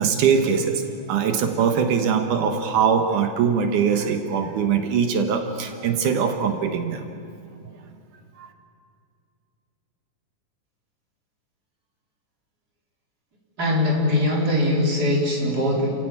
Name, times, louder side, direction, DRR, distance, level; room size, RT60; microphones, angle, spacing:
voice 1, 0.0-7.1 8.4-8.5, right 6 dB, 75° right, 6 dB, 2.8 m, -22 dB
voice 2, 13.6-15.9, left 1 dB, 30° right, -2 dB, 4.6 m, -21 dB
29.5 x 15.5 x 8.9 m, 2.4 s
omnidirectional pair, 3.6 m